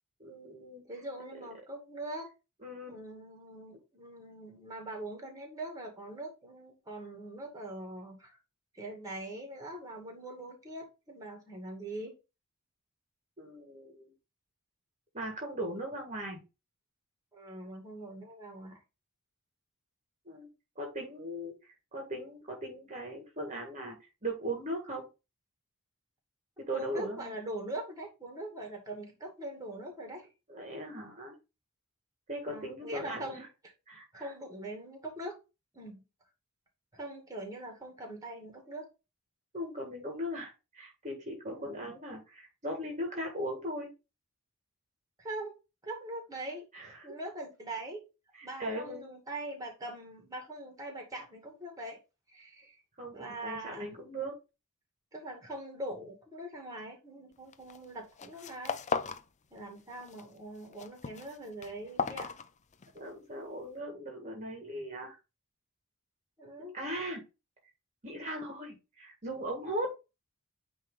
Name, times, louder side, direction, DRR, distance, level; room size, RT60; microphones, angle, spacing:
voice 1, 0.2-0.8 2.6-3.0 13.4-14.1 15.1-16.4 20.3-20.5 20.8-25.1 26.6-27.4 30.5-31.4 32.3-33.5 33.9-34.3 39.5-43.9 46.7-47.2 48.3-49.0 53.0-54.3 62.9-65.2 66.6-67.2 68.0-69.9, right 1 dB, 35° right, 1.8 m, -39 dB
voice 2, 0.9-2.3 2.9-8.4 8.7-12.1 17.3-18.8 26.7-30.3 32.5-33.5 34.1-35.4 35.7-36.0 36.9-38.9 41.5-41.8 45.2-45.6 45.8-46.6 47.0-48.0 48.4-52.0 52.3-52.8 53.1-53.9 55.1-58.8 59.5-62.3 66.4-66.8, right 1 dB, 15° right, 2.2 m, -42 dB
sound 1, 57.5-57.8 58.1-59.3 59.6-60.2 60.5-63.0, left 5 dB, 30° left, 0.5 m, -36 dB
9.3 x 3.2 x 3.8 m
head